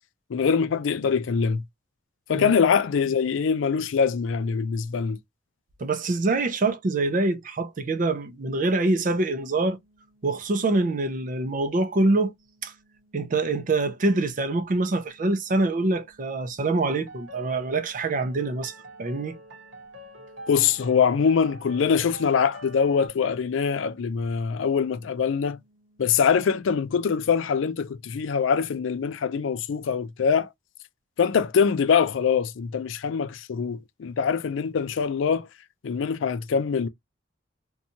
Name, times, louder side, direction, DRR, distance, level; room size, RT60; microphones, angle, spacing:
voice 1, 0.3-1.6 2.3-5.2 20.5-25.6 26.0-30.5 31.2-35.5 35.8-36.9, left 6 dB, 85° left, 0.4 m, -23 dB
voice 2, 5.8-9.8 10.2-12.3 12.6-12.7 13.1-18.7 19.0-19.4, right 2 dB, 45° right, 0.4 m, -25 dB
sound 1, 8.9-27.6, right 1 dB, 30° right, 0.8 m, -64 dB
sound 2, 16.9-23.1, right 1 dB, 85° right, 1.0 m, -45 dB
2.6 x 2.3 x 2.7 m
head